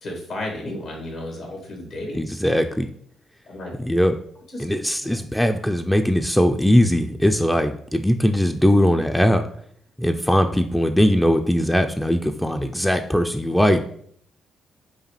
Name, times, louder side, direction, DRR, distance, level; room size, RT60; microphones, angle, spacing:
voice 1, 0.0-2.2 3.5-3.7 4.5-4.6, left 1 dB, 75° left, -1 dB, 1.4 m, -33 dB
voice 2, 2.1-2.9 3.8-4.1 4.6-9.4 10.0-13.8, equal, 5° left, 5 dB, 0.3 m, -20 dB
4.9 x 2.4 x 3.1 m, 0.64 s
supercardioid pair, 60°, 0 cm